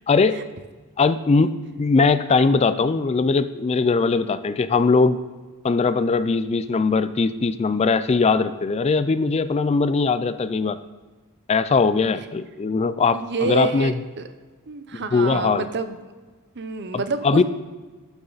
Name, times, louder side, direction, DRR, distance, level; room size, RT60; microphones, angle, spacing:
voice 1, 0.1-0.4 1.0-1.5 1.8-5.2 5.6-10.8 11.5-13.9 14.9-15.7 16.9-17.4, left 4 dB, 30° left, 13 dB, 0.3 m, -20 dB
voice 2, 13.1-14.2 14.7-16.0 16.6-17.4, right 4 dB, 50° right, 10 dB, 0.7 m, -28 dB
12.0 x 7.0 x 4.0 m, 1.4 s
head